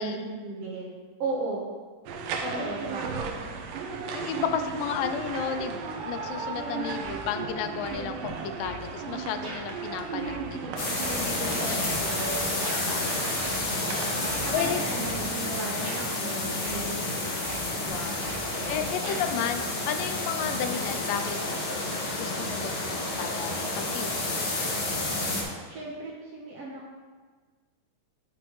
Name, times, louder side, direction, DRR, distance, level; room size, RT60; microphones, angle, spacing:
voice 1, 0.0-1.7 2.4-3.3 11.6-12.6 14.0-17.3 18.5-19.2 25.4-26.9, right 2 dB, 65° right, -4 dB, 1.7 m, -36 dB
sound 1, 2.1-14.5, right 5 dB, 90° right, 2.3 m, -35 dB
voice 2, 4.1-11.9 12.9-13.3 14.5-14.8 17.9-18.2 18.7-24.5, left 8 dB, 85° left, 8 dB, 2.2 m, -33 dB
sound 2, 7.0-7.5 7.8-8.8 9.4-9.6 10.2-12.9 13.4-13.9 14.2-15.2 15.8-16.0 16.6-17.1 17.4-19.3, right 2 dB, 40° right, 2.3 m, -40 dB
sound 3, 10.8-25.4, left 2 dB, 65° left, 1.1 m, -30 dB
11.0 x 6.1 x 3.1 m, 1.5 s
omnidirectional pair, 3.8 m